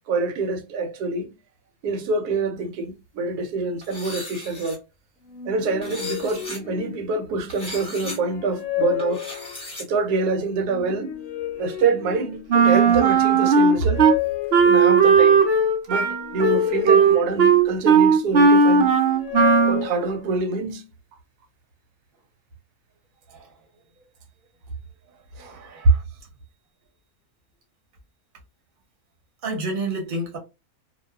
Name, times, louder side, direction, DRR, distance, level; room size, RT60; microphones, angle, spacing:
voice 1, 0.1-1.3 1.8-4.8 5.5-9.2 9.8-11.1 11.6-14.0 14.7-15.4 15.9-19.0 19.7-20.9, right 4 dB, 90° right, 1.1 m, -26 dB
sound 1, 3.8-4.8 5.8-6.6 7.5-8.2 9.0-9.8, left 2 dB, 5° left, 0.9 m, -37 dB
sound 2, 5.3-7.4 7.9-9.9 10.6-12.7 13.2-15.2 15.9-18.1 18.5-20.6, left 13 dB, 70° left, 0.9 m, -32 dB
Wind instrument woodwind instrument, 12.5-14.2 14.5-19.8, right 5 dB, 75° right, 0.6 m, -16 dB
voice 2, 25.3-26.0 29.4-30.4, right 2 dB, 40° right, 0.8 m, -30 dB
2.6 x 2.2 x 2.2 m
omnidirectional pair, 1.6 m